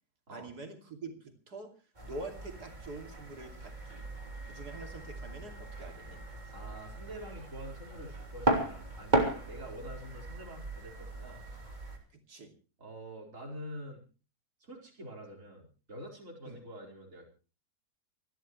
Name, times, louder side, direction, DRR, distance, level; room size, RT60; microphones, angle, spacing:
voice 1, 0.3-1.7 2.0-4.0 4.5-6.2 12.3-12.5 16.4-16.6, right 2 dB, 70° right, 4 dB, 3.3 m, -45 dB
sound 1, 1.9-12.0, right 2 dB, 25° right, 3.5 m, -36 dB
voice 2, 6.5-11.4 12.8-14.0 14.6-17.2, equal, 50° right, -1 dB, 5.0 m, -46 dB
28.0 x 12.5 x 3.2 m, 0.35 s
omnidirectional pair, 1.8 m